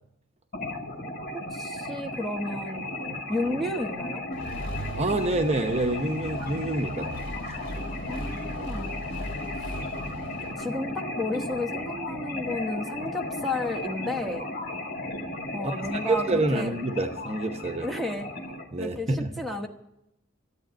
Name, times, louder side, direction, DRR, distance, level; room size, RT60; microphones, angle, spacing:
sound 1, 0.5-18.6, left 2 dB, 45° left, 1.9 m, -35 dB
voice 1, 1.5-2.8 3.3-4.2 8.1-9.0 10.6-14.5 15.5-16.7 17.8-18.3 18.8-19.7, left 2 dB, ahead, 2 dB, 1.0 m, -32 dB
Accelerating revving vroom, 4.3-10.5, equal, 70° left, 5.0 m, -38 dB
voice 2, 5.0-7.1 7.8-7.9 15.6-17.9 18.7-19.3, right 2 dB, 30° right, 5 dB, 0.9 m, -27 dB
14.5 x 9.0 x 9.2 m, 0.85 s
head